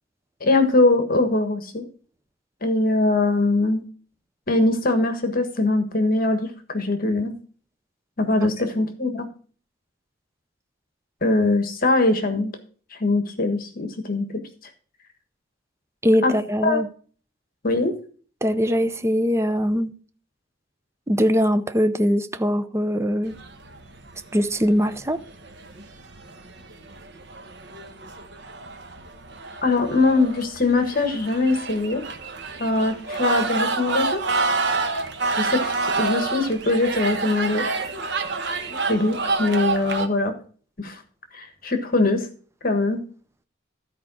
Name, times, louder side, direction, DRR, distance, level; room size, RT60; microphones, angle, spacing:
voice 1, 0.4-1.8 2.6-3.8 4.5-7.4 8.2-9.3 11.2-12.5 13.0-14.3 16.2-16.3 16.6-16.8 17.6-17.9 29.6-32.0 32.6-34.2 35.4-37.6 38.7-40.3 40.8-41.0 41.3-42.3 42.6-43.0, left 2 dB, 45° left, 1.5 m, -22 dB
voice 2, 16.0-16.9 18.4-19.9 21.1-23.4 24.3-25.2, equal, 15° right, 0.6 m, -21 dB
sound 1, 23.3-40.1, right 3 dB, 60° right, 1.2 m, -28 dB
13.0 x 4.8 x 6.1 m
head